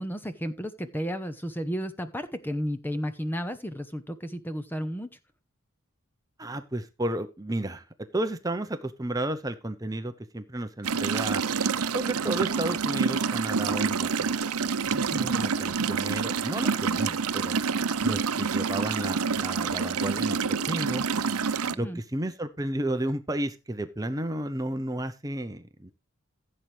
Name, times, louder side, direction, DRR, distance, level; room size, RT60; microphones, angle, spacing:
voice 1, 0.0-5.1 14.9-15.4 21.6-22.0, equal, 10° left, 10 dB, 0.9 m, -33 dB
voice 2, 6.4-7.8 8.1-11.4 11.9-14.3 15.1-17.5 18.0-20.4 20.7-21.0 21.8-25.9, right 1 dB, 15° right, 8 dB, 0.8 m, -32 dB
sound 1, 10.8-21.7, right 5 dB, 85° right, 0.7 m, -27 dB
15.5 x 7.5 x 3.3 m, 0.27 s
head